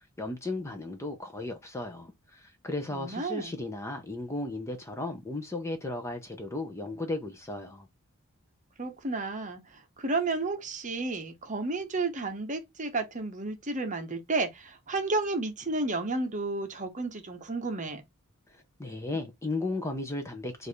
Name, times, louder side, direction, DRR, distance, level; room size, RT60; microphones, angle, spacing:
voice 1, 0.2-7.9 18.5-20.7, left 2 dB, 15° left, 0.6 m, -35 dB
voice 2, 2.9-3.6 8.8-18.0, right 3 dB, 35° right, 0.9 m, -32 dB
4.7 x 2.6 x 3.3 m
head